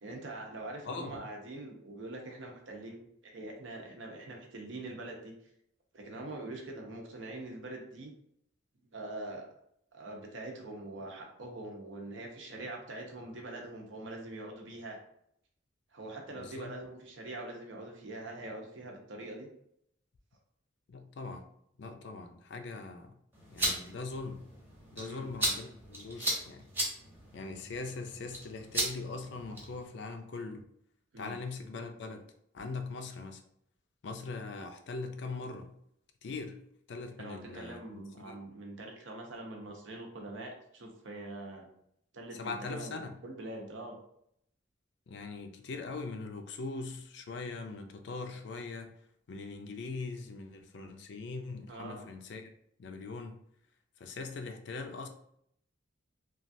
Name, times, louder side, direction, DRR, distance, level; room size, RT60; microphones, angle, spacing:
voice 1, 0.0-5.3 5.9-8.1 8.9-9.4 9.9-15.0 15.9-19.5 25.0-25.3 31.1-31.4 37.2-41.7 42.1-44.0 51.7-52.0, right 2 dB, 70° right, 1 dB, 0.7 m, -43 dB
voice 2, 0.9-1.2 16.4-16.8 20.9-21.5 21.8-23.2 23.5-24.4 24.9-26.7 27.3-30.7 31.2-32.2 32.5-33.4 34.0-35.7 36.2-36.6 36.9-38.4 42.3-43.2 45.1-48.9 49.3-52.5 52.8-53.4 54.0-55.1, left 3 dB, 60° left, 6 dB, 0.4 m, -41 dB
sound 1, 23.3-29.9, right 1 dB, 10° right, 0.8 m, -37 dB
3.1 x 2.3 x 2.6 m, 0.71 s
head